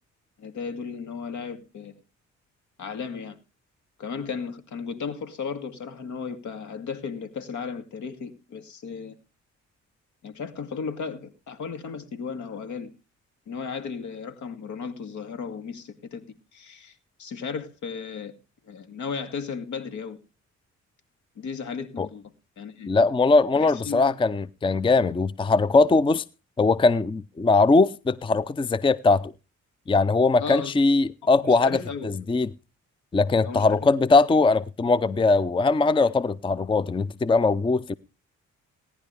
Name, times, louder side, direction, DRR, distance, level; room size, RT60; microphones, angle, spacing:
voice 1, 0.4-2.0 2.8-3.4 4.0-9.2 10.2-12.9 13.5-16.3 16.5-18.4 18.7-20.2 21.4-22.9 23.5-24.2 30.4-30.7 31.4-32.2 33.4-33.8, left 5 dB, 70° left, 2.4 m, -35 dB
voice 2, 22.9-26.2 26.6-29.3 29.9-31.8 32.0-32.5 33.1-37.9, left 3 dB, 15° left, 0.5 m, -21 dB
18.0 x 11.0 x 3.4 m
cardioid pair, 90°, 30 cm